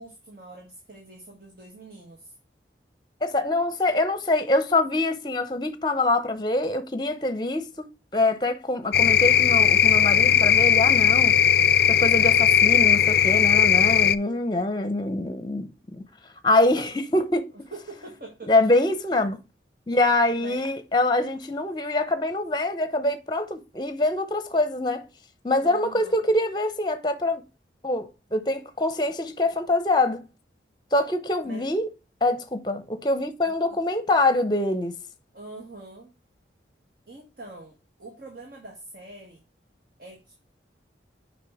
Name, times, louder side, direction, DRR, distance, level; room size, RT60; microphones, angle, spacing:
voice 1, 0.0-2.3 17.7-18.5 20.4-20.6 25.6-26.2 31.4-31.7 33.4-33.8 35.3-36.1 37.1-39.4 40.0-40.3, right 2 dB, 50° right, 1.6 m, -44 dB
voice 2, 3.2-7.9 8.1-11.4 11.9-16.0 16.4-17.5 18.5-19.4 19.9-25.1 25.4-27.4 27.8-30.2 30.9-31.9 32.2-34.9, left 2 dB, 25° left, 0.8 m, -24 dB
sound 1, 8.9-14.2, left 9 dB, 55° left, 0.4 m, -18 dB
6.6 x 5.2 x 3.5 m
head